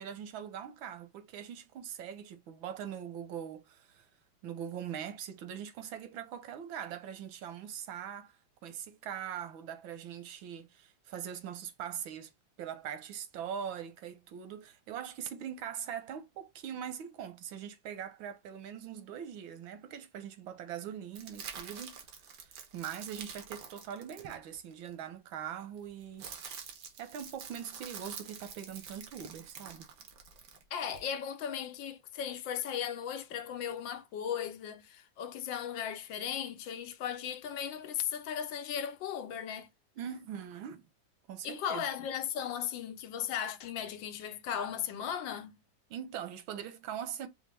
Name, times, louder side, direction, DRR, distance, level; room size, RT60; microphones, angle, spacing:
voice 1, 0.0-4.1 4.4-8.3 8.6-12.3 12.6-26.2 27.0-29.9 40.0-40.8 41.3-41.8 45.9-47.3, right 9 dB, 85° right, 1.6 m, -42 dB
sound 1, 21.1-24.9 25.8-31.0, right 6 dB, 65° right, 1.6 m, -47 dB
voice 2, 30.7-39.7 41.4-45.5, left 9 dB, 75° left, 1.4 m, -37 dB
5.7 x 2.3 x 3.3 m
omnidirectional pair, 2.1 m